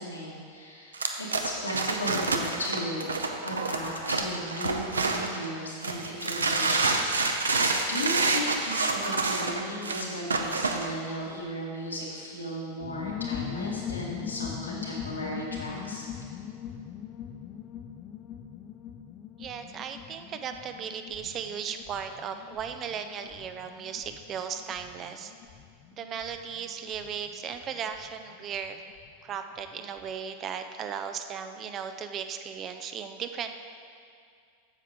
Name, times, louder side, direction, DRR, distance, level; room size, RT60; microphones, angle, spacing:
voice 1, 0.0-3.1 3.4-16.0, equal, 80° left, -4 dB, 1.7 m, -36 dB
sound 1, 0.9-5.5 5.8-10.9, right 3 dB, 75° right, 0.6 m, -28 dB
sound 2, 12.8-29.1 29.3-29.4 29.7-30.1, left 9 dB, 35° left, 0.3 m, -41 dB
voice 2, 19.4-25.3 26.0-28.8 29.2-33.7, right 7 dB, 30° right, 7 dB, 0.4 m, -36 dB
8.9 x 7.2 x 3.5 m, 2.3 s
figure-of-eight pair, 90°, 0 cm